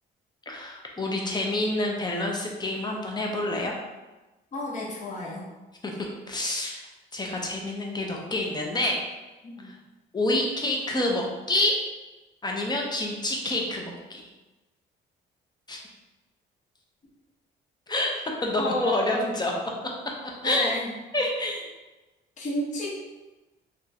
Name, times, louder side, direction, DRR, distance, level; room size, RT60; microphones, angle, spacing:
voice 1, 0.5-3.7 5.8-5.9 6.3-9.0 9.6-9.7 10.1-11.8 12.4-14.2 15.7-15.8 17.9-18.1 18.4-19.5 20.4-20.7 21.1-21.7, left 1 dB, 20° left, 0 dB, 0.7 m, -28 dB
voice 2, 4.5-5.4 9.4-9.7 18.6-19.3 20.4-20.9 22.4-23.0, left 1 dB, 40° left, -7 dB, 0.9 m, -31 dB
2.6 x 2.4 x 4.1 m, 1.1 s
cardioid pair, 90°, 20 cm